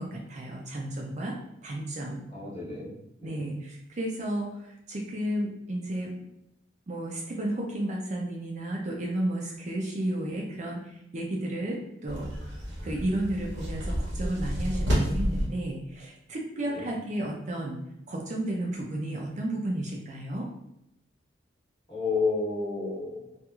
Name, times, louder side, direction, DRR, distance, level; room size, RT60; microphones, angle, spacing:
voice 1, 0.0-1.3 1.6-2.2 3.2-6.1 6.9-12.3 12.8-17.8 18.1-20.5, right 1 dB, 40° right, -1 dB, 0.4 m, -32 dB
voice 2, 2.3-2.9 3.2-3.5 16.6-16.9 21.9-23.4, left 4 dB, 30° left, -7 dB, 1.0 m, -31 dB
sound 1, 12.1-15.5, equal, 80° right, 0.9 m, -30 dB
2.9 x 2.4 x 2.3 m, 0.80 s
head